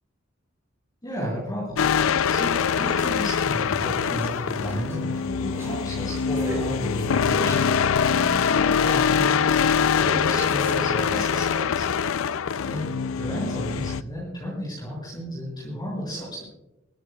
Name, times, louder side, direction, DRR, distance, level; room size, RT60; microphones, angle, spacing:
voice 1, 1.0-1.8 2.1-11.9 12.7-12.9 13.1-16.5, equal, 20° left, -5 dB, 6.7 m, -33 dB
sound 1, 1.8-14.0, left 7 dB, 90° left, 0.4 m, -23 dB
sound 2, 2.4-11.6, right 1 dB, 15° right, 5.9 m, -39 dB
23.0 x 16.5 x 2.3 m, 0.94 s
head